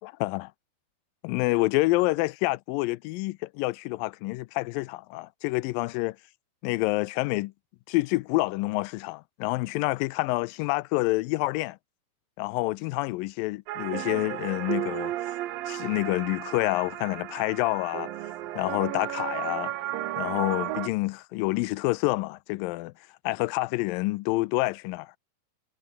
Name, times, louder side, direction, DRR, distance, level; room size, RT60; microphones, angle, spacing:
voice 1, 0.0-0.5 1.2-6.2 6.6-7.5 7.9-11.8 12.4-15.4 15.7-18.1 18.6-19.7 20.2-22.9 23.2-25.1, left 21 dB, 80° left, 2.1 m, -28 dB
sound 1, 13.7-20.9, right 14 dB, 75° right, 2.9 m, -34 dB
omnidirectional pair, 4.3 m